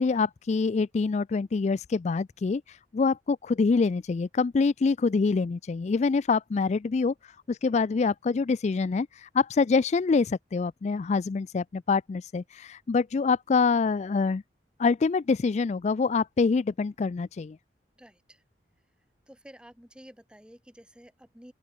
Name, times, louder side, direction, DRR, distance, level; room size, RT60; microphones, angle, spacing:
voice 1, 0.0-14.4 14.8-17.6, left 4 dB, 40° left, 0.3 m, -25 dB
voice 2, 18.0-18.4 19.3-21.5, equal, 5° right, 3.9 m, -51 dB
open air
head